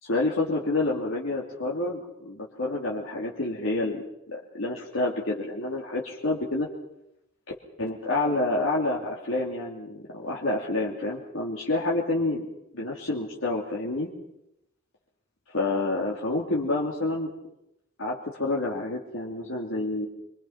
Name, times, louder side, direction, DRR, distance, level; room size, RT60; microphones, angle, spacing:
voice 1, 0.0-6.7 7.8-12.4 12.7-14.1 15.5-17.3 18.0-20.1, left 2 dB, 90° left, -3 dB, 2.8 m, -28 dB
27.5 x 24.0 x 5.9 m, 0.86 s
head